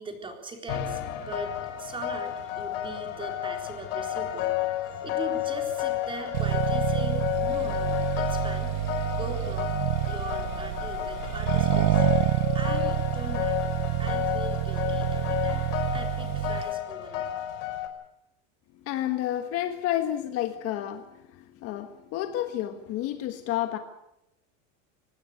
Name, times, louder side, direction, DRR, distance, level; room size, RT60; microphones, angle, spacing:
voice 1, 0.0-8.9 9.1-9.7 10.1-12.0 12.5-17.2, right 2 dB, 15° right, 4 dB, 4.0 m, -41 dB
sound 1, 0.7-17.9, left 12 dB, 75° left, 4.9 m, -31 dB
Accelerating revving vroom, 6.3-16.7, right 19 dB, 60° right, 0.8 m, -28 dB
voice 2, 18.8-23.8, left 12 dB, 35° left, 8 dB, 1.5 m, -30 dB
25.0 x 19.5 x 6.6 m, 0.87 s
supercardioid pair, 170°, 40 cm